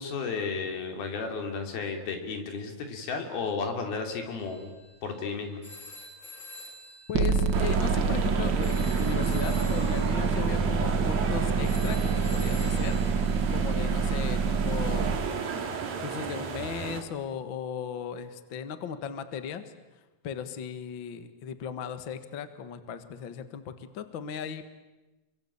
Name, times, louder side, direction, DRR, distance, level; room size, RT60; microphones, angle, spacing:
voice 1, 0.0-4.7 5.0-5.6, left 4 dB, 85° left, 4 dB, 5.0 m, -33 dB
sound 1, 4.4-13.9, left 2 dB, 20° left, 3.6 m, -48 dB
voice 2, 7.1-13.0 13.5-15.2 16.0-19.6 20.2-24.6, left 7 dB, 50° left, 10 dB, 1.6 m, -37 dB
sound 2, 7.1-15.2, right 5 dB, 55° right, 1.3 m, -26 dB
sound 3, 7.5-17.0, right 6 dB, 75° right, 4.3 m, -34 dB
29.0 x 23.5 x 8.7 m, 1.1 s
omnidirectional pair, 4.2 m